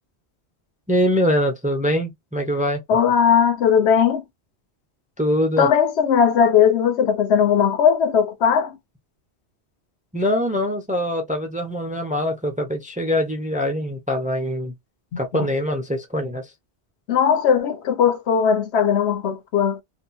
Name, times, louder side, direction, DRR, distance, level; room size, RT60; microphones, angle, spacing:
voice 1, 0.9-2.8 5.2-5.7 10.1-14.7 15.2-16.5, equal, 10° right, 0.4 m, -23 dB
voice 2, 2.9-4.2 5.6-8.8 15.1-15.5 17.1-19.8, left 7 dB, 80° left, 0.9 m, -18 dB
2.8 x 2.5 x 2.2 m
omnidirectional pair, 1.1 m